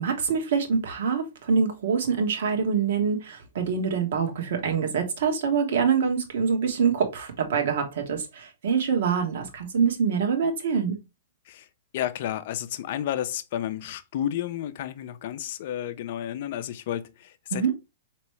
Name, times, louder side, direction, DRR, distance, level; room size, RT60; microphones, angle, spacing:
voice 1, 0.0-11.0 17.5-17.7, right 6 dB, 70° right, 1.2 m, -25 dB
voice 2, 11.9-17.7, left 11 dB, 55° left, 0.4 m, -31 dB
4.5 x 2.9 x 3.1 m
hypercardioid pair, 130°, 0 cm